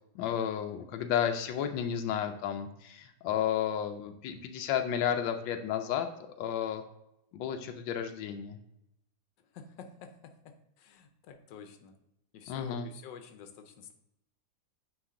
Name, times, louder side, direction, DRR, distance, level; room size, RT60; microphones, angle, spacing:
voice 1, 0.1-6.1 6.4-6.8 7.3-8.6 12.5-12.9, left 9 dB, 90° left, 6 dB, 1.3 m, -32 dB
voice 2, 9.5-11.9 12.3-13.9, left 7 dB, 70° left, 6 dB, 1.3 m, -49 dB
8.9 x 3.4 x 3.7 m, 0.83 s
omnidirectional pair, 2.0 m